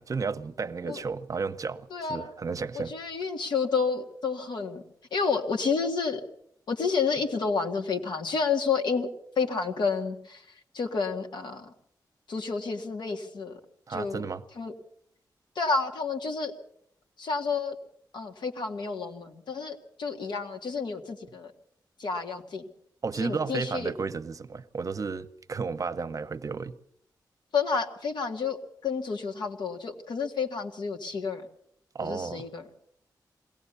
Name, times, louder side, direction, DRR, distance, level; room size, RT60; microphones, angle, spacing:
voice 1, 0.0-2.9 13.9-14.4 23.0-26.8 31.9-32.5, right 5 dB, 50° right, 0.9 m, -33 dB
voice 2, 1.9-2.3 2.7-4.8 5.1-6.2 6.7-9.1 9.4-11.7 12.3-13.6 13.9-14.2 14.6-14.7 15.6-16.5 17.2-17.8 18.1-21.5 22.0-22.6 23.1-23.9 27.5-31.5 32.0-32.7, left 5 dB, 85° left, 2.1 m, -30 dB
22.0 x 17.0 x 7.0 m
wide cardioid pair, 95°, 7 cm